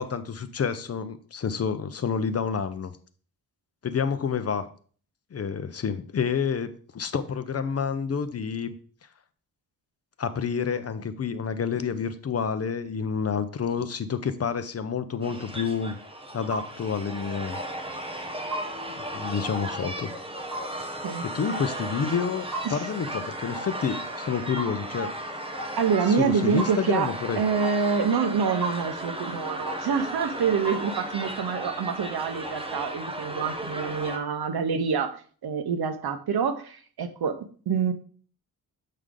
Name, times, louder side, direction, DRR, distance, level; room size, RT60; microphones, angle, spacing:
voice 1, 0.0-3.0 3.8-4.6 5.3-8.8 10.2-16.0 16.3-17.6 19.1-20.1 21.2-25.2 26.1-27.4, left 6 dB, 40° left, 11 dB, 0.5 m, -29 dB
sound 1, 15.2-34.2, right 1 dB, 15° right, 0.8 m, -35 dB
sound 2, 16.5-16.7 17.5-17.7 18.5-18.7 19.5-19.7 20.5-20.7 21.5-21.7 22.5-22.7 23.5-23.7 24.6-24.8 25.6-25.7 26.6-26.7 27.6-27.8 28.6-28.8 29.7-29.8 30.6-30.8, right 1 dB, 50° right, 3.9 m, -34 dB
voice 2, 25.8-27.1 27.4-35.1 35.4-37.3 37.7-37.9, right 6 dB, 75° right, 8 dB, 0.9 m, -26 dB
7.6 x 4.9 x 3.7 m, 0.44 s
wide cardioid pair, 170°, 38 cm